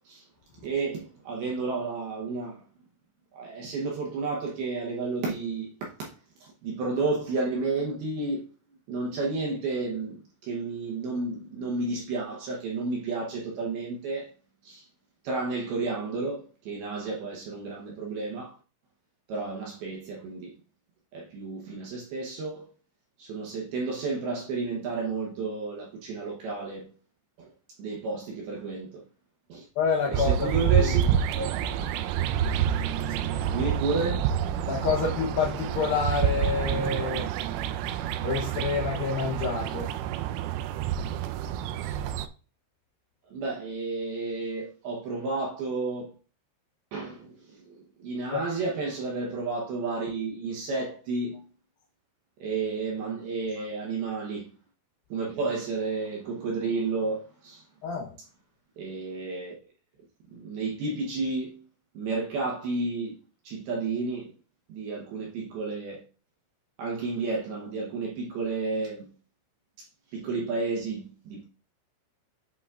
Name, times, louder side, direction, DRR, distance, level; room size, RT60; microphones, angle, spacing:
voice 1, 0.6-2.6 3.3-6.1 6.4-8.5 8.9-14.3 14.6-14.8 15.2-18.5 19.3-20.5 21.1-22.7 23.2-26.9 27.4-27.5 27.8-29.0 29.5-29.6 30.1-31.0 31.3-31.5 33.5-34.4 41.8-42.0 43.3-46.1 46.9-51.5 52.4-54.5 55.1-57.6 58.8-59.6 60.3-61.6 61.9-63.2 63.4-64.3 64.7-66.0 66.8-69.1 70.1-71.4, right 3 dB, 70° right, 2.4 m, -31 dB
voice 2, 29.8-31.0 32.6-33.6 34.7-37.3 38.2-39.9 48.3-48.4 57.8-58.1, left 5 dB, 85° left, 2.0 m, -29 dB
sound 1, 30.1-42.3, right 9 dB, 85° right, 3.1 m, -28 dB
7.9 x 5.8 x 2.5 m
omnidirectional pair, 5.6 m